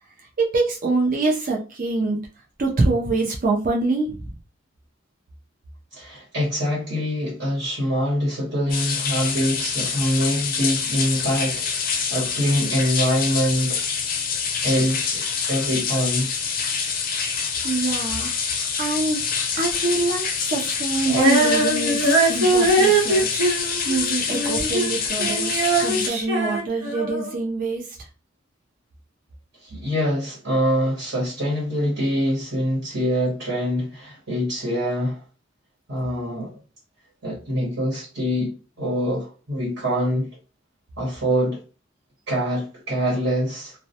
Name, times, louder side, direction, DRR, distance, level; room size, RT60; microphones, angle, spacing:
voice 1, 0.4-2.2 2.6-4.1 17.6-18.3 18.8-19.2 19.6-22.0 22.3-23.3 23.9-25.5 25.8-27.8, right 3 dB, 45° right, 0.5 m, -24 dB
voice 2, 5.9-13.8 14.6-15.2 15.5-16.3 29.6-35.2 35.9-36.6 37.2-40.3 41.0-41.6 42.3-43.7, equal, 65° right, 1.1 m, -24 dB
sound 1, 8.7-26.1, left 6 dB, 45° left, 0.5 m, -26 dB
Female singing, 21.1-24.9 25.2-27.3, right 2 dB, 85° right, 1.1 m, -21 dB
2.2 x 2.2 x 2.7 m
head